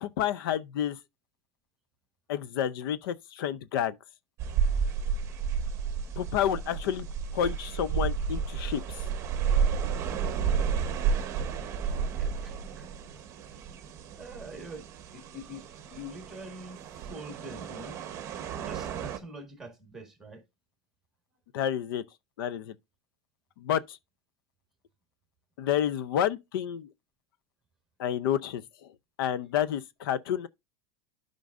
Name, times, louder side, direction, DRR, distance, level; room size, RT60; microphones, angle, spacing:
voice 1, 0.0-1.0 2.3-4.0 6.2-7.1 7.3-9.0 21.5-22.0 22.4-22.7 23.6-24.0 25.6-26.9 28.0-28.9 29.2-30.5, left 10 dB, 70° left, 0.6 m, -30 dB
sound 1, 4.4-19.2, right 6 dB, 25° right, 1.0 m, -31 dB
voice 2, 11.9-13.2 14.2-15.6 15.9-18.0 18.7-20.4, equal, 5° right, 1.6 m, -45 dB
12.5 x 5.3 x 2.5 m
supercardioid pair, 175°, 12 cm